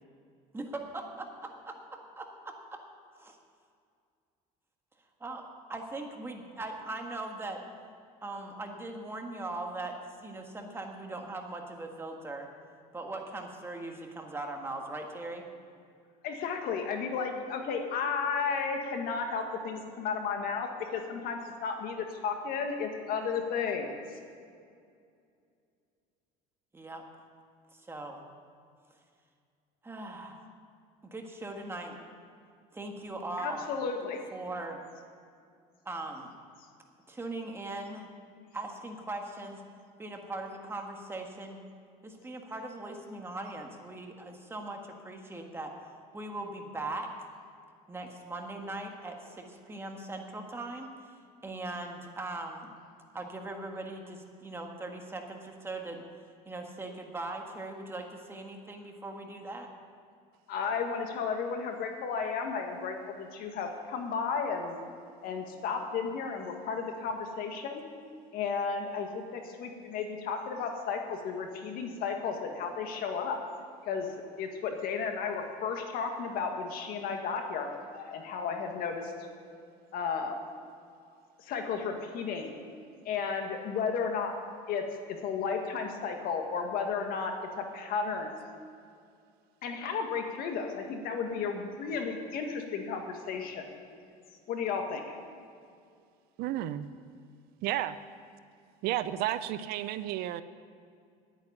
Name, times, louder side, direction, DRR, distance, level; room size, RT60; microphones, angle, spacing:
voice 1, 0.5-2.5 3.2-3.4 5.2-5.4 5.7-7.6 8.2-12.5 12.9-15.4 26.7-27.0 27.7-28.2 29.8-30.5 31.0-32.0 32.7-33.7 34.3-34.8 35.8-36.3 37.1-38.1 38.5-39.6 40.0-41.6 42.0-47.1 47.9-51.1 51.4-52.7 53.1-56.0 56.4-59.7, right 2 dB, 15° right, 3 dB, 1.5 m, -40 dB
voice 2, 16.2-24.0 33.4-34.2 60.5-64.8 65.2-67.8 68.3-73.4 73.8-74.1 74.4-77.7 77.9-79.1 79.9-80.4 81.4-82.5 83.1-84.3 84.7-88.3 89.6-93.7 94.5-95.2, left 5 dB, 60° left, 4 dB, 1.8 m, -33 dB
voice 3, 96.4-96.9 97.6-98.0 98.8-100.4, right 13 dB, 65° right, 13 dB, 0.6 m, -32 dB
9.8 x 9.0 x 9.7 m, 2.3 s
cardioid pair, 130°, 17 cm